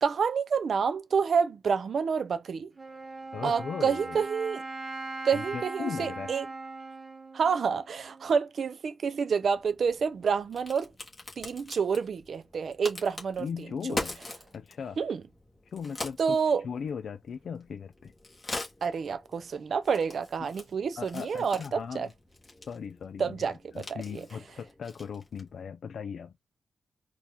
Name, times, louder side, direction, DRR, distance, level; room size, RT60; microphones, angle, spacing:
voice 1, 0.0-2.7 3.4-4.6 5.2-6.5 7.3-10.9 11.4-13.5 13.9-14.0 15.0-15.2 16.2-16.6 18.8-22.1 23.2-23.6 23.9-24.2, right 6 dB, 60° right, 0.4 m, -28 dB
Wind instrument woodwind instrument, 2.8-8.5, right 3 dB, 25° right, 1.0 m, -40 dB
voice 2, 3.3-4.2 5.3-6.3 13.4-14.2 14.5-15.0 15.7-16.4 16.6-18.1 21.0-22.1 22.7-26.3, left 6 dB, 70° left, 0.4 m, -38 dB
Crack, 9.5-25.6, left 2 dB, 25° left, 1.4 m, -43 dB
4.3 x 2.4 x 3.4 m
wide cardioid pair, 125°, 0 cm